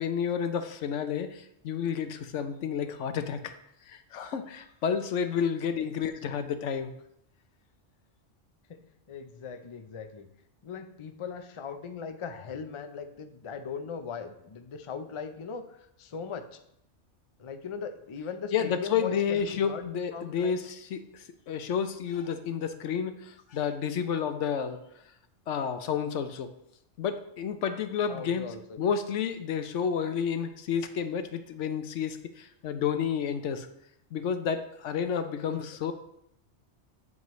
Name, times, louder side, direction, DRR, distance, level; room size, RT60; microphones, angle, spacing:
voice 1, 0.0-3.5 3.9-6.9 18.5-24.8 25.5-26.5 27.0-28.5 28.8-33.7 34.1-35.9, left 7 dB, 80° left, 9 dB, 1.0 m, -30 dB
voice 2, 9.1-10.3 10.6-16.6 17.4-20.6 28.1-28.6 35.3-35.6, left 6 dB, 35° left, 7 dB, 0.5 m, -39 dB
9.3 x 7.5 x 3.1 m, 0.76 s
omnidirectional pair, 1.2 m